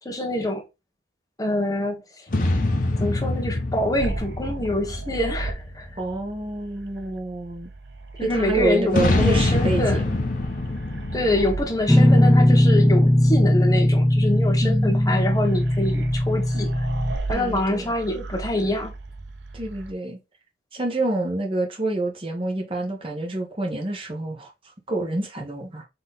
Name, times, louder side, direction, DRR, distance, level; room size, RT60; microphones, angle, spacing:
voice 1, 0.0-0.6 1.4-2.2 3.0-5.9 8.2-10.1 11.1-16.9 17.3-18.9, left 1 dB, 20° left, 1.1 m, -25 dB
sound 1, 2.3-6.0 8.9-12.7, left 2 dB, 50° left, 0.8 m, -25 dB
sound 2, 4.0-19.9, right 2 dB, 75° right, 0.7 m, -36 dB
voice 2, 6.0-7.7 8.2-10.2 14.6-15.3 17.3-17.9 19.5-20.2 20.7-24.5 24.9-25.8, right 2 dB, 30° right, 1.1 m, -27 dB
Guitar, 11.9-17.1, left 1 dB, 5° left, 0.3 m, -18 dB
3.9 x 3.0 x 4.0 m
head